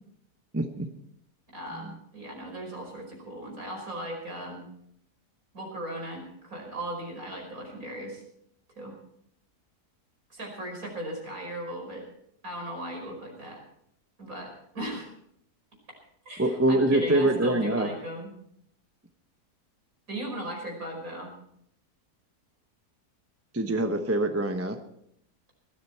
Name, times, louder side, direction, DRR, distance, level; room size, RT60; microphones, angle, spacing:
voice 1, 0.5-0.9 1.7-1.9 16.4-17.9 23.5-24.8, right 1 dB, 10° right, 6 dB, 0.9 m, -24 dB
voice 2, 1.5-4.6 5.5-8.2 8.8-9.0 10.3-12.0 12.4-13.6 14.2-15.1 16.3-18.3 20.1-21.3, right 1 dB, 60° right, 1 dB, 5.7 m, -37 dB
19.5 x 13.5 x 4.5 m, 0.71 s
omnidirectional pair, 1.7 m